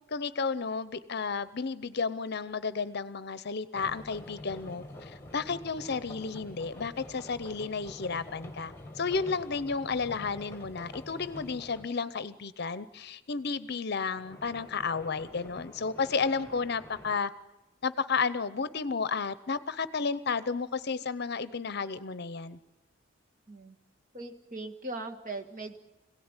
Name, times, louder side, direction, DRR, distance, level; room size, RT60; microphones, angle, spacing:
voice 1, 0.1-17.3 17.8-22.6, left 5 dB, 55° left, 15 dB, 0.7 m, -32 dB
sound 1, 3.7-11.9 14.1-17.2, left 1 dB, 10° left, 1.9 m, -47 dB
voice 2, 24.1-25.8, right 2 dB, 40° right, 6 dB, 1.8 m, -39 dB
26.0 x 17.5 x 9.8 m, 1.1 s
head